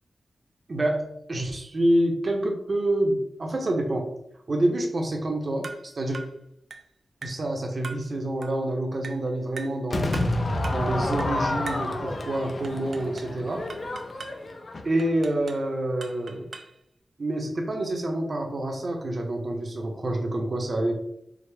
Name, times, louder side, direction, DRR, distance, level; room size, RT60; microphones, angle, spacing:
voice 1, 0.7-4.1 4.5-6.2 7.2-10.1 10.7-13.7 14.8-16.4 17.2-20.9, right 1 dB, 50° right, 2 dB, 0.8 m, -27 dB
sound 1, 5.6-5.9 6.1-6.4 6.7-6.9 7.2-7.5 7.8-8.1 8.4-8.6 9.0-9.3 9.6-9.8 10.1-10.4 10.6-10.9 11.2-11.4 11.7-11.9 12.6-13.4 13.7-14.4 15.0-15.7 16.0-16.8, right 4 dB, 70° right, 0.4 m, -41 dB
Crowd / Fireworks, 9.9-15.2, left 2 dB, 50° left, 0.5 m, -29 dB
4.8 x 2.1 x 3.4 m, 0.76 s
wide cardioid pair, 105°, 0 cm